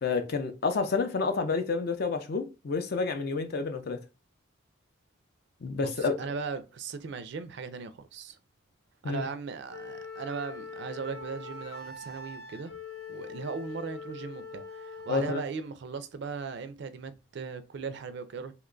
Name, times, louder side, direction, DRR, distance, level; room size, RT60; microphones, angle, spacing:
voice 1, 0.0-4.0 5.6-6.1 9.0-9.2 15.1-15.4, left 4 dB, 45° left, 0.4 m, -29 dB
voice 2, 5.7-8.4 9.0-12.7 13.1-18.5, right 5 dB, 55° right, 0.3 m, -38 dB
Wind instrument woodwind instrument, 9.7-15.5, left 4 dB, 75° left, 0.8 m, -43 dB
2.8 x 2.2 x 3.7 m
head